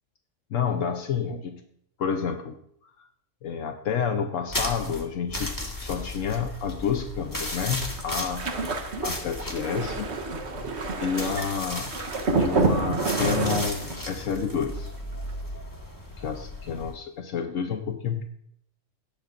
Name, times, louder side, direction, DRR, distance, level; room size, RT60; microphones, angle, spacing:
voice 1, 0.5-1.6 2.0-2.6 3.4-8.5 9.0-10.1 11.0-11.9 12.4-14.9 16.2-18.2, left 7 dB, 75° left, 5 dB, 1.2 m, -29 dB
sound 1, 4.5-16.9, left 1 dB, 15° left, 1.7 m, -35 dB
sound 2, 7.5-14.3 14.6-14.9 15.1-15.3, right 3 dB, 60° right, 1.4 m, -28 dB
16.5 x 10.5 x 2.6 m, 0.69 s
omnidirectional pair, 1.3 m